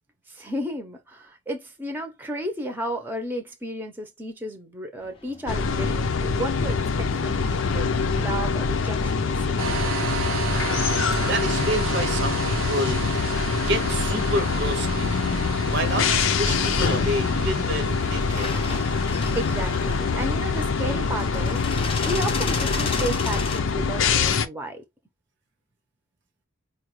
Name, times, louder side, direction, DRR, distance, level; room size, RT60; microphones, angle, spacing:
voice 1, 0.3-10.0 19.3-21.6 22.0-24.8, right 1 dB, 10° right, 0.7 m, -33 dB
sound 1, 5.0-23.6, left 4 dB, 25° left, 0.6 m, -38 dB
sound 2, 5.5-24.5, left 5 dB, 75° left, 0.5 m, -24 dB
sound 3, 9.6-21.7, right 7 dB, 80° right, 0.5 m, -34 dB
voice 2, 11.2-13.3 13.6-18.8, equal, 60° right, 0.8 m, -29 dB
4.6 x 2.3 x 3.1 m
head